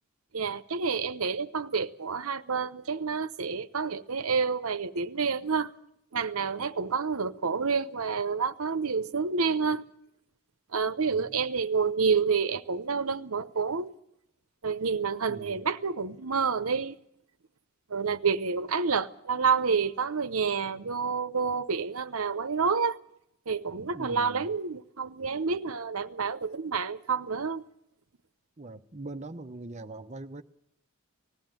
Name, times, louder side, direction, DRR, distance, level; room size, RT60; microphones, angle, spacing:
voice 1, 0.3-5.7 6.1-9.8 10.7-13.9 14.6-17.0 17.9-23.0 23.5-27.7, right 5 dB, 75° right, 0.9 m, -29 dB
voice 2, 11.1-11.4 15.3-15.6 23.9-24.6 28.6-30.4, right 2 dB, 30° right, 0.8 m, -42 dB
19.5 x 15.5 x 9.1 m
head